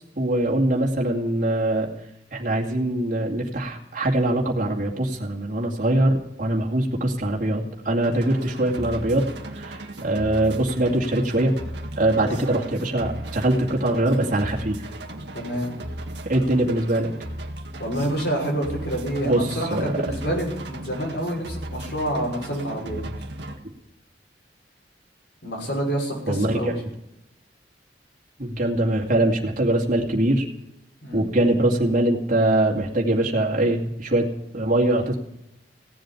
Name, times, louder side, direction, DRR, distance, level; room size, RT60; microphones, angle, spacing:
voice 1, 0.2-1.9 2.3-9.2 9.5-11.5 12.0-14.9 16.3-17.1 19.2-19.9 26.3-26.8 28.4-30.5 31.1-34.3 34.5-35.2, right 1 dB, 50° right, -2 dB, 2.5 m, -22 dB
sound 1, 8.0-23.6, right 1 dB, 75° right, 1.8 m, -36 dB
voice 2, 15.3-15.7 17.8-23.0 25.4-26.8 31.0-31.2, right 1 dB, 70° left, -2 dB, 6.1 m, -28 dB
17.5 x 7.9 x 9.9 m, 0.84 s
head